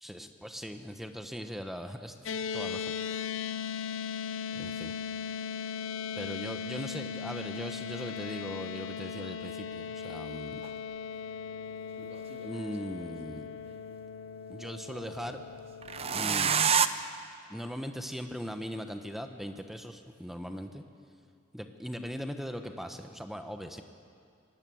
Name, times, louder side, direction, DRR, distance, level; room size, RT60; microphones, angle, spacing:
voice 1, 0.0-2.2 2.5-2.9 4.5-5.0 6.2-10.6 12.4-13.5 14.5-15.4 16.1-16.6 17.5-20.8 21.5-23.8, equal, ahead, 6 dB, 1.0 m, -39 dB
sound 1, 2.3-16.7, left 7 dB, 85° left, 0.7 m, -38 dB
sound 2, 10.6-10.7 12.0-13.0 15.8-16.9, right 7 dB, 30° right, 0.7 m, -27 dB
24.5 x 18.5 x 7.8 m, 2.4 s
head